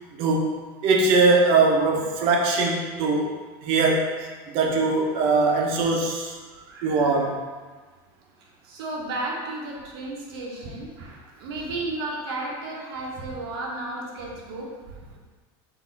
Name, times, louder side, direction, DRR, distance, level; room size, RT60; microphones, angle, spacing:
voice 1, 0.1-0.5 0.8-3.3 3.6-4.1 4.5-6.3 6.8-7.4, right 3 dB, 50° right, 1 dB, 0.7 m, -21 dB
voice 2, 6.4-7.3 8.4-14.7, right 2 dB, 90° right, -2 dB, 1.0 m, -34 dB
4.1 x 2.7 x 4.0 m, 1.4 s
supercardioid pair, 155°, 12 cm